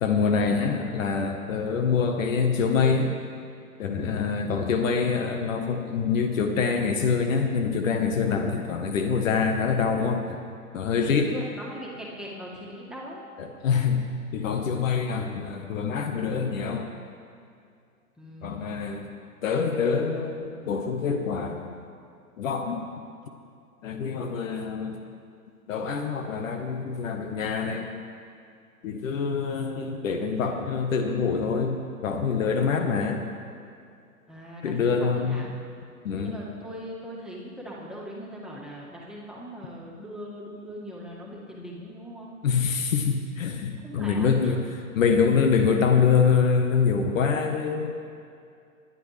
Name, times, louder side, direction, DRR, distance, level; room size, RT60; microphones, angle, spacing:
voice 1, 0.0-3.2 3.8-10.4 10.7-11.3 13.4-14.1 14.3-16.9 18.4-19.1 19.4-21.8 22.4-22.9 23.8-25.0 25.7-27.9 28.8-33.2 34.6-35.4 36.0-36.4 42.4-47.9, left 5 dB, 60° left, 5 dB, 1.4 m, -25 dB
voice 2, 11.2-13.2 18.2-18.9 34.3-35.5 36.2-42.3 43.8-44.6, equal, ahead, -5 dB, 1.9 m, -40 dB
20.0 x 10.0 x 3.4 m, 2.4 s
hypercardioid pair, 115°, 44 cm